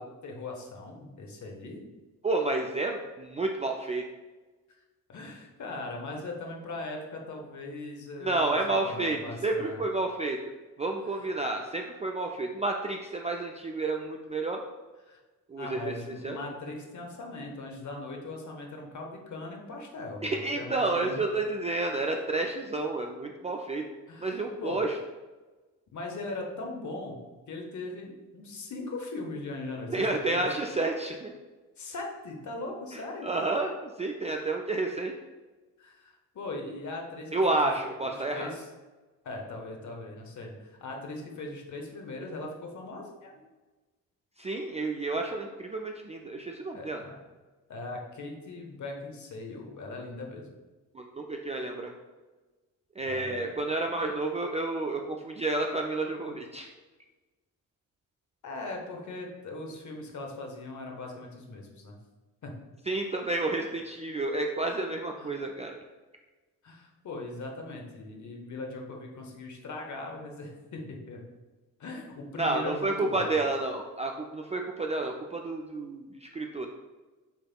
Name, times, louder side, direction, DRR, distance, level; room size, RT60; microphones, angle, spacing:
voice 1, 0.0-1.8 5.1-8.6 8.8-9.8 11.1-11.2 15.1-15.2 15.6-21.2 24.1-24.8 25.9-27.2 27.5-30.5 31.8-33.3 35.8-37.7 38.0-38.7 39.2-43.4 46.7-47.2 47.7-50.5 53.0-53.5 58.4-62.0 62.4-62.6 65.2-65.4 66.6-71.2 71.8-73.3, left 2 dB, 45° left, 1 dB, 1.1 m, -39 dB
voice 2, 2.2-4.0 8.2-10.4 10.8-14.6 15.5-15.9 16.2-16.4 20.2-23.8 24.2-24.9 29.9-31.3 32.9-35.1 37.3-38.5 44.4-47.0 50.9-51.9 53.0-56.7 62.9-65.8 72.4-76.7, right 2 dB, 15° right, 2 dB, 0.4 m, -30 dB
7.1 x 3.4 x 2.2 m, 1.2 s
figure-of-eight pair, 40°, 41 cm